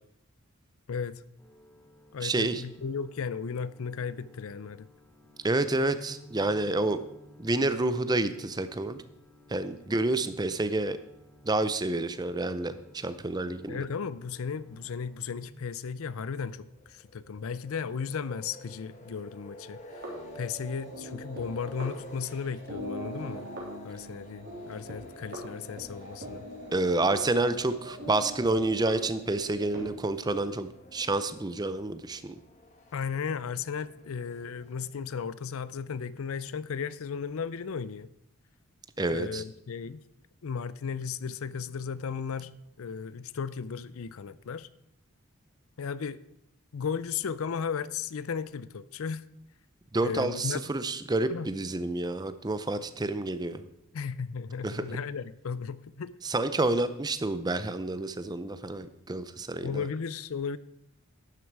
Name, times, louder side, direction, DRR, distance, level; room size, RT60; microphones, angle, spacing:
voice 1, 0.9-1.2 2.1-4.9 13.7-23.5 23.8-26.4 32.9-38.1 39.1-40.0 40.4-44.7 45.8-46.2 46.7-49.2 50.0-50.6 51.3-51.5 53.9-56.1 59.6-60.6, left 6 dB, 70° left, 0.5 m, -35 dB
sound 1, 1.4-15.4, equal, 10° left, 1.6 m, -56 dB
voice 2, 2.2-2.6 5.4-7.0 7.4-9.0 9.5-11.0 11.4-13.8 26.7-32.4 39.0-39.4 49.9-53.6 54.6-54.8 56.2-59.9, right 2 dB, 20° right, 0.5 m, -29 dB
sound 2, 16.0-35.1, left 1 dB, 30° left, 1.3 m, -51 dB
sound 3, 19.9-29.8, equal, 50° right, 3.3 m, -42 dB
11.5 x 9.4 x 4.7 m
head